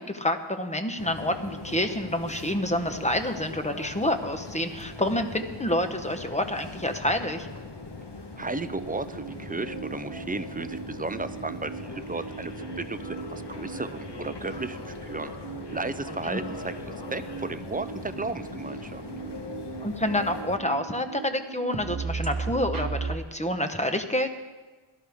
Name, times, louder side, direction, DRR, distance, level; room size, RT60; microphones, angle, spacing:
voice 1, 0.0-7.5 16.2-16.4 19.8-24.3, left 1 dB, 15° left, 7 dB, 0.9 m, -28 dB
sound 1, 1.0-20.6, left 3 dB, 55° left, 1.2 m, -40 dB
voice 2, 8.4-15.3 15.7-16.7 17.1-19.0, right 3 dB, 20° right, 12 dB, 0.4 m, -34 dB
sound 2, 8.5-23.2, right 5 dB, 45° right, 1.0 m, -38 dB
17.5 x 12.5 x 3.5 m, 1.3 s
wide cardioid pair, 60°, 50 cm